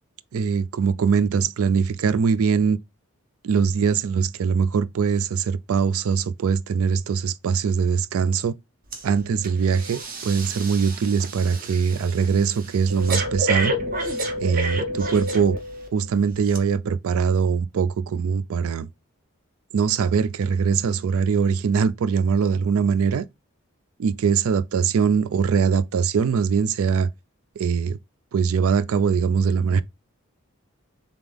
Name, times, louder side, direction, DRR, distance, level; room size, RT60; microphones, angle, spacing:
voice 1, 0.3-2.8 3.4-8.5 9.0-13.7 14.4-15.6 15.9-18.9 19.7-23.2 24.0-27.1 27.6-28.0 28.3-29.8, right 6 dB, 70° right, 0.4 m, -22 dB
Breathing, 8.9-9.1 9.4-15.9 16.4-16.6, right 1 dB, 40° right, 0.8 m, -29 dB
3.7 x 3.5 x 3.3 m
head